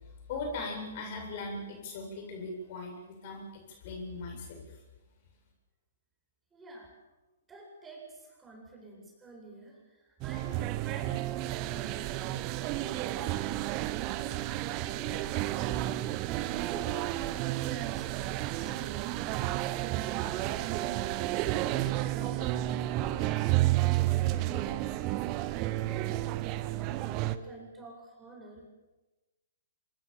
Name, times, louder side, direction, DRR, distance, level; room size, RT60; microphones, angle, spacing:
voice 1, 0.3-4.6, left 3 dB, 45° left, 2 dB, 7.7 m, -39 dB
voice 2, 6.5-7.0 7.5-16.1 16.5-19.4 21.7-24.8 25.7-28.7, right 1 dB, 15° right, 0 dB, 8.0 m, -49 dB
sound 1, 10.2-27.4, right 15 dB, 35° right, 1.2 m, -31 dB
26.5 x 20.5 x 7.4 m, 1.1 s
figure-of-eight pair, 115°, 0 cm